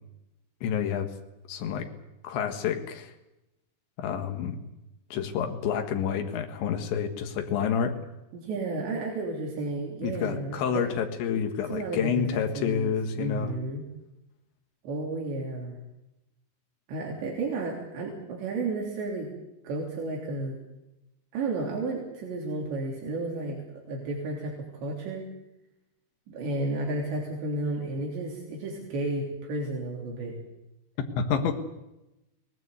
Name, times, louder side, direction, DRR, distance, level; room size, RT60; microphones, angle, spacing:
voice 1, 0.6-1.1 1.5-1.9 2.2-3.1 4.0-4.6 5.1-8.0 10.0-13.5 31.2-31.5, left 7 dB, 90° left, 5 dB, 4.0 m, -29 dB
voice 2, 8.3-10.9 11.7-13.8 14.8-15.8 16.9-19.3 19.6-20.6 21.3-25.3 26.3-30.4, right 2 dB, 75° right, -1 dB, 5.6 m, -32 dB
23.0 x 19.5 x 8.2 m, 0.93 s
omnidirectional pair, 5.1 m